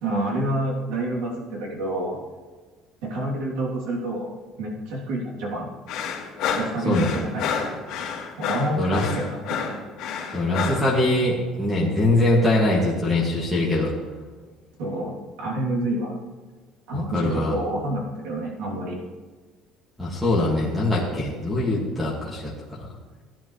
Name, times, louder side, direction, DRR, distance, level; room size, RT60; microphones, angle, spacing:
voice 1, 0.0-2.2 3.0-4.3 4.6-5.7 6.6-7.8 8.4-9.8 14.8-16.2 16.9-19.0, right 1 dB, 90° right, -3 dB, 3.1 m, -28 dB
sound 1, 5.9-10.9, left 6 dB, 60° left, 2.3 m, -29 dB
voice 2, 8.8-9.1 10.3-13.9 16.9-17.5 20.0-22.9, left 1 dB, ahead, -8 dB, 2.1 m, -22 dB
16.5 x 10.5 x 3.3 m, 1.4 s
cardioid pair, 160°, 0 cm